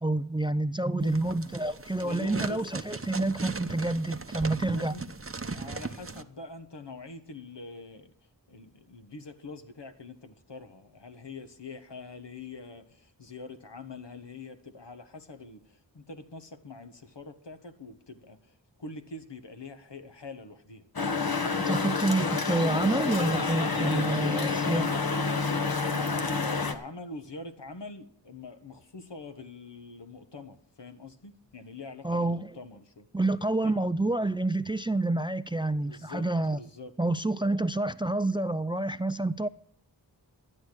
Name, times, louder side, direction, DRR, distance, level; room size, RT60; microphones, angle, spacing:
voice 1, 0.0-4.9 21.7-24.9 32.0-32.5 33.1-36.6 37.0-39.5, right 2 dB, 10° right, 0.4 m, -28 dB
sound 1, 1.0-6.2, right 3 dB, 30° right, 0.8 m, -38 dB
voice 2, 2.0-2.6 4.6-5.0 5.4-8.1 8.5-18.5 18.8-21.5 23.8-25.2 25.6-33.1 33.6-33.8 35.8-36.3 36.5-36.9, left 3 dB, 75° left, 1.4 m, -44 dB
sound 2, 21.0-26.7, left 4 dB, 55° left, 1.3 m, -28 dB
12.5 x 8.9 x 6.3 m
wide cardioid pair, 55°, 43 cm